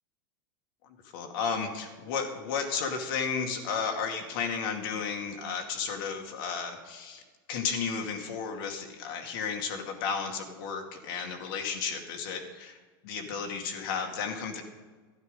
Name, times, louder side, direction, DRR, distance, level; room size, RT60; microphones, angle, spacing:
voice 1, 1.1-7.2 7.5-12.8 13.0-14.6, left 6 dB, 70° left, 3 dB, 2.3 m, -33 dB
12.5 x 11.0 x 5.3 m, 1.4 s
supercardioid pair, 120°, 12 cm